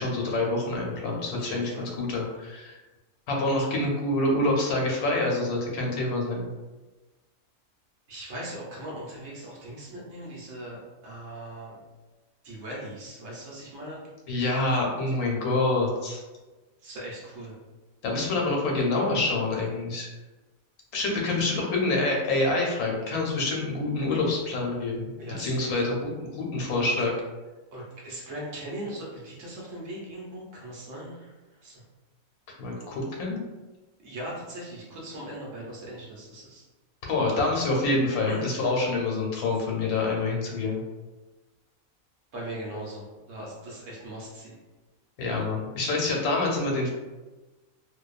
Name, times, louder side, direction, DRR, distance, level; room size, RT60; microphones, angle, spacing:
voice 1, 0.0-2.8 3.3-6.5 14.3-16.2 18.0-20.1 20.9-25.1 25.4-27.1 32.6-33.4 37.0-40.8 45.2-46.9, left 2 dB, 85° left, -1 dB, 1.1 m, -26 dB
voice 2, 1.3-1.9 8.1-11.8 12.4-14.0 15.1-15.2 16.8-17.5 25.2-25.8 27.7-31.3 31.6-31.8 34.0-36.6 38.3-38.5 42.3-44.5, right 1 dB, 65° right, -4 dB, 1.0 m, -39 dB
2.5 x 2.2 x 2.3 m, 1.2 s
omnidirectional pair, 1.5 m